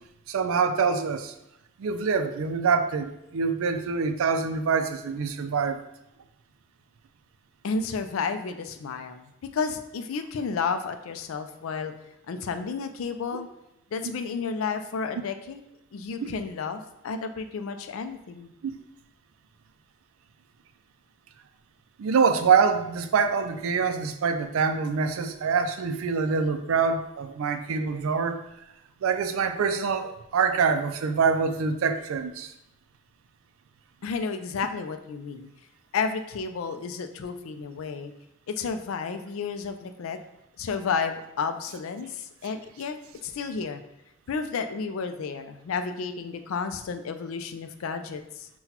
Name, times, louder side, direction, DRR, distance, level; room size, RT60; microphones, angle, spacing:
voice 1, 0.3-1.3 1.8-5.8 16.2-16.3 18.6-18.7 22.0-28.5 29.0-32.5, right 5 dB, 85° right, 9 dB, 0.4 m, -25 dB
voice 2, 7.6-11.9 12.3-13.5 13.9-15.6 15.9-18.5 34.0-35.5 35.9-38.1 38.5-40.2 40.6-43.8 44.3-48.5, left 5 dB, 80° left, 8 dB, 0.4 m, -32 dB
5.7 x 2.2 x 2.8 m, 0.84 s
head